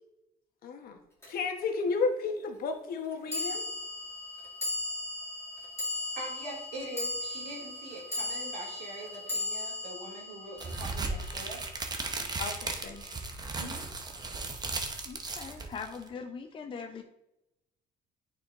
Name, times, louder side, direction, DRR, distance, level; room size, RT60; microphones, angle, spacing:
voice 1, 0.6-1.0 1.3-3.6 12.4-13.0, left 4 dB, 60° left, 5 dB, 1.0 m, -32 dB
sound 1, 1.2-1.3 3.3-11.7, left 2 dB, 15° left, 2.2 m, -37 dB
voice 2, 6.2-11.6 13.5-13.8, right 1 dB, 90° right, -3 dB, 2.4 m, -43 dB
sound 2, 10.6-16.1, right 3 dB, 25° right, 0.8 m, -36 dB
voice 3, 15.1-17.0, left 5 dB, 30° left, 5 dB, 0.5 m, -41 dB
9.2 x 4.5 x 2.5 m, 0.89 s
cardioid pair, 110°, 17 cm